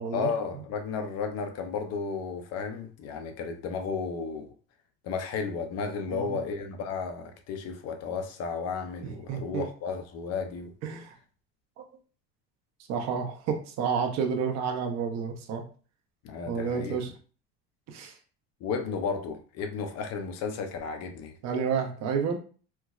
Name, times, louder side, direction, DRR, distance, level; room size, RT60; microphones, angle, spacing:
voice 1, 0.1-4.5 5.0-10.7 16.2-17.0 18.6-21.4, left 5 dB, 55° left, 0.6 m, -33 dB
voice 2, 9.0-9.6 10.8-11.1 11.8-11.9 12.9-15.6 16.5-17.1 17.9-18.1 21.4-22.4, right 6 dB, 60° right, 0.8 m, -30 dB
4.4 x 2.0 x 2.4 m
cardioid pair, 130°, 30 cm